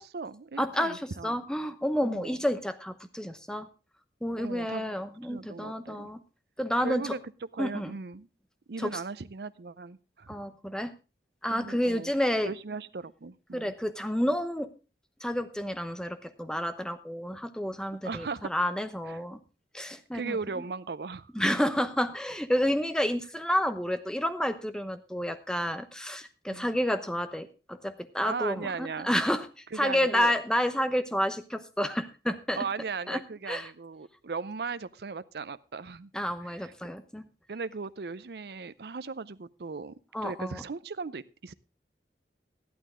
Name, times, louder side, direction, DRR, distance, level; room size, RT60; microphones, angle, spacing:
voice 1, 0.0-1.4 2.0-2.4 4.4-4.9 5.2-6.1 6.8-7.2 7.5-8.3 8.7-10.4 11.5-12.1 12.4-13.7 18.0-18.5 19.1-19.2 20.1-21.5 26.5-26.7 28.2-29.1 29.7-30.4 32.6-36.1 36.4-36.7 37.5-39.9 40.2-41.5, right 4 dB, 65° right, 15 dB, 0.6 m, -37 dB
voice 2, 0.6-3.7 4.2-6.2 6.6-7.1 7.6-7.9 8.8-9.0 10.3-10.9 11.4-12.5 13.5-14.7 15.2-19.4 19.7-20.4 21.3-32.6 33.1-33.2 33.5-33.7 36.1-37.2 40.1-40.6, equal, 5° left, 10 dB, 0.8 m, -30 dB
13.5 x 11.5 x 3.7 m, 0.31 s
head